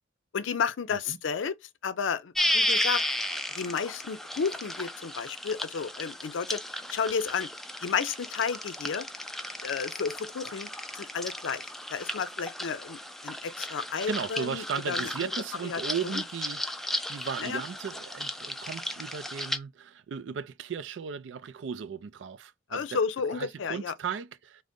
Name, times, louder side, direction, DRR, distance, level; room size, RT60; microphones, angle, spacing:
voice 1, 0.3-1.6 1.8-3.0 3.5-7.5 7.8-9.1 9.6-10.7 10.9-15.1 15.6-16.2 17.4-17.6 22.7-23.9, left 6 dB, 90° left, 0.5 m, -32 dB
sound 1, 2.3-19.6, left 1 dB, ahead, 0.3 m, -34 dB
voice 2, 14.1-23.0 23.3-24.6, right 6 dB, 75° right, 0.4 m, -36 dB
3.8 x 2.0 x 3.5 m
head